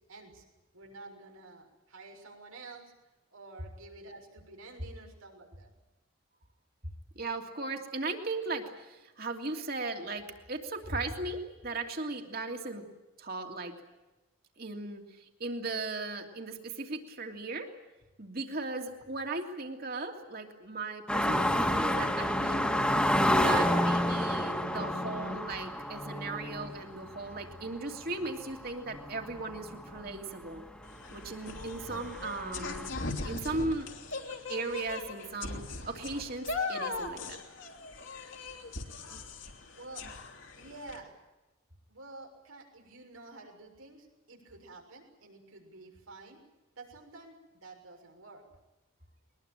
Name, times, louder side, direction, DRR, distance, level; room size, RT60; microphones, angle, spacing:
voice 1, 0.1-0.4 0.7-2.8 3.3-5.7 39.8-40.1 40.6-41.1 41.9-46.4 46.8-48.4, right 2 dB, 85° right, 2 dB, 6.7 m, -50 dB
voice 2, 7.2-12.8 13.2-13.7 14.6-17.7 18.2-22.7 23.3-30.6 31.1-32.8 33.2-33.9 34.5-37.4, right 3 dB, 45° right, 3 dB, 2.9 m, -37 dB
sound 1, 21.1-30.2 30.6-30.7 31.1-32.9, left 1 dB, 5° left, 2.0 m, -29 dB
sound 2, 30.8-41.0, left 3 dB, 60° left, 3.0 m, -39 dB
22.5 x 21.0 x 9.1 m, 1.0 s
head